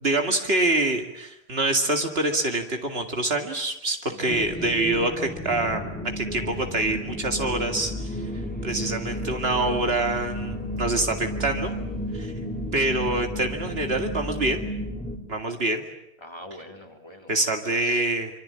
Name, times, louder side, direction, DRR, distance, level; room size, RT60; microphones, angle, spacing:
voice 1, 0.0-5.9 6.2-8.2 8.6-11.7 12.1-12.3 12.7-14.6 15.3-15.8 17.3-18.3, right 2 dB, 70° right, 4 dB, 2.5 m, -25 dB
voice 2, 4.1-4.7 16.2-18.1, left 1 dB, 25° left, 3 dB, 3.6 m, -45 dB
sound 1, 4.3-15.2, equal, 10° left, 3.4 m, -32 dB
26.0 x 25.5 x 8.7 m, 0.87 s
omnidirectional pair, 1.1 m